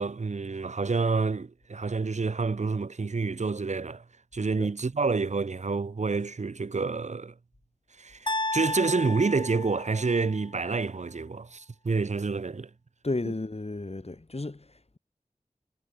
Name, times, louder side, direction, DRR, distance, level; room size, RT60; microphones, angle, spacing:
voice 1, 0.0-4.0 4.3-7.3 8.0-12.7, right 4 dB, 65° right, 0.7 m, -28 dB
sound 1, 8.3-10.4, left 2 dB, 35° left, 1.6 m, -33 dB
voice 2, 13.0-15.0, left 2 dB, 50° left, 3.3 m, -33 dB
wide cardioid pair, 45°, 13 cm